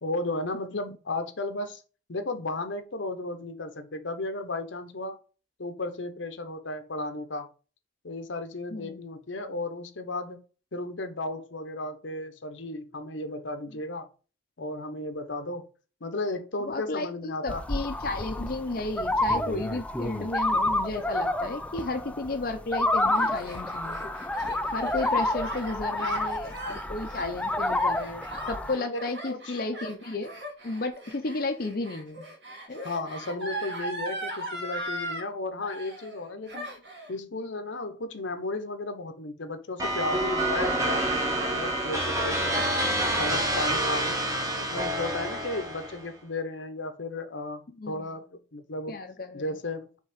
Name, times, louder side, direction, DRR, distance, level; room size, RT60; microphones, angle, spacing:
voice 1, 0.0-1.8 2.1-5.2 5.6-7.5 8.0-10.4 10.7-14.1 14.6-15.6 16.0-17.6 28.8-29.6 32.8-36.7 37.1-42.6 43.2-44.2 44.6-49.0 49.3-50.0, left 2 dB, 85° left, 0.9 m, -34 dB
voice 2, 16.7-24.1 24.7-28.2 28.5-30.3 30.6-32.2 32.7-32.9 47.8-48.1 48.9-49.5, left 2 dB, 50° left, 0.6 m, -33 dB
sound 1, 17.5-28.8, left 2 dB, 5° left, 0.3 m, -29 dB
Gasp, 22.8-35.3 35.6-36.2 36.5-37.1, right 1 dB, 70° right, 2.7 m, -39 dB
sound 2, 39.8-46.0, right 1 dB, 15° right, 1.3 m, -27 dB
5.6 x 3.7 x 5.1 m
head